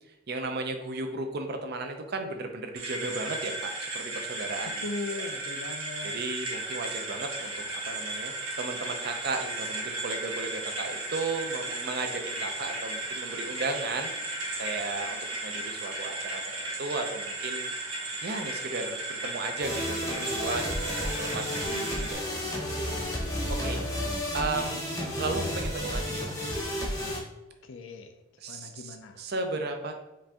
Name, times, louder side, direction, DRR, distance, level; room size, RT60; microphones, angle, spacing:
voice 1, 0.3-5.3 6.0-14.3 14.6-17.7 18.2-22.9 23.2-23.8 24.3-26.3 28.4-29.9, right 3 dB, 50° right, 5 dB, 0.5 m, -35 dB
sound 1, 2.7-22.1, right 2 dB, 80° right, 1.0 m, -35 dB
voice 2, 4.8-6.2 27.7-28.1 28.5-29.2, left 3 dB, 65° left, 7 dB, 0.4 m, -38 dB
sound 2, 6.5-24.1, equal, 20° right, 1.0 m, -50 dB
sound 3, 19.6-27.2, left 1 dB, 15° left, 0.8 m, -32 dB
5.2 x 2.6 x 3.5 m, 0.98 s
head